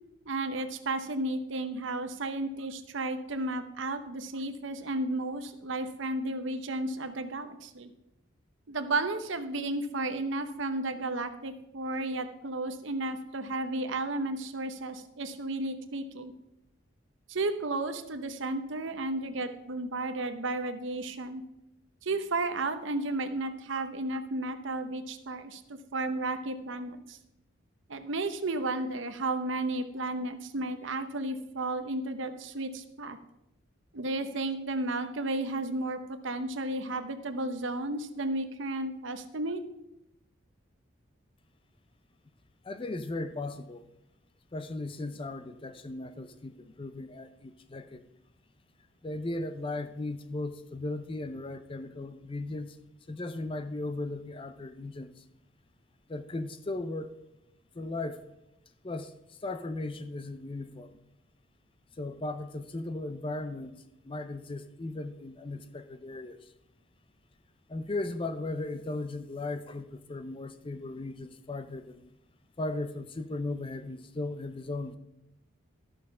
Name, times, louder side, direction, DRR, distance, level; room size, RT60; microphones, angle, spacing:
voice 1, 0.3-7.9 8.7-16.3 17.3-21.4 22.0-27.2 27.9-33.2 33.9-39.6, right 2 dB, 65° right, 9 dB, 0.8 m, -33 dB
voice 2, 42.6-43.8 44.5-48.0 49.0-52.8 53.1-55.1 56.1-57.1 57.8-58.2 58.8-59.1 59.4-60.9 62.0-66.4 67.7-72.1 72.6-75.0, left 2 dB, 25° left, 10 dB, 0.5 m, -37 dB
12.0 x 6.4 x 5.5 m, 0.89 s
head